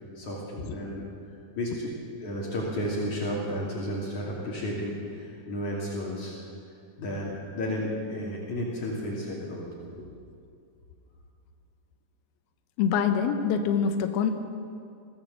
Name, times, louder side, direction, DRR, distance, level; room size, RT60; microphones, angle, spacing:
voice 1, 0.2-1.0 1.6-1.9 2.2-6.3 7.0-9.7 9.9-10.1, equal, 50° left, -4 dB, 3.8 m, -32 dB
voice 2, 12.8-14.3, left 7 dB, 75° left, 6 dB, 2.8 m, -24 dB
23.5 x 16.0 x 7.2 m, 2.4 s
omnidirectional pair, 4.7 m